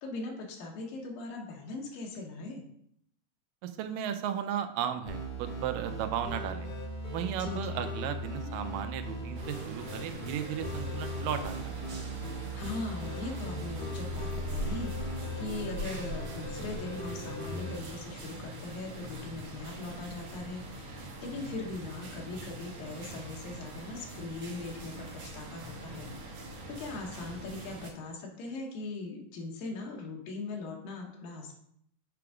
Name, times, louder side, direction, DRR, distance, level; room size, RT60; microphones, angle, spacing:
voice 1, 0.0-2.6 7.4-7.9 12.5-14.9 15.4-26.1 26.7-31.5, left 3 dB, 85° left, 0 dB, 2.9 m, -40 dB
voice 2, 3.6-6.7 7.1-11.8, right 9 dB, 80° right, 8 dB, 2.2 m, -35 dB
sound 1, 5.1-17.8, equal, 50° left, 3.1 m, -38 dB
sound 2, 9.3-27.9, right 2 dB, 55° right, 1.7 m, -42 dB
7.7 x 3.6 x 4.9 m, 0.71 s
omnidirectional pair, 4.0 m